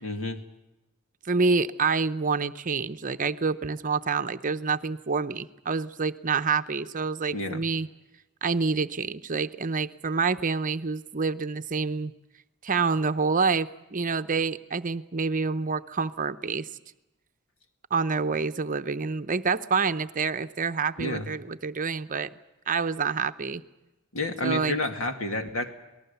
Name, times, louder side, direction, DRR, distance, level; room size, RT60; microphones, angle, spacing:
voice 1, 0.0-0.4 7.3-7.6 21.0-21.3 24.1-25.7, left 1 dB, 70° left, 5 dB, 2.5 m, -30 dB
voice 2, 1.2-7.9 8.4-12.1 12.6-16.7 17.9-22.3 22.7-23.6 24.4-24.8, right 4 dB, 40° right, 10 dB, 0.8 m, -27 dB
27.0 x 19.0 x 7.0 m, 1.0 s
head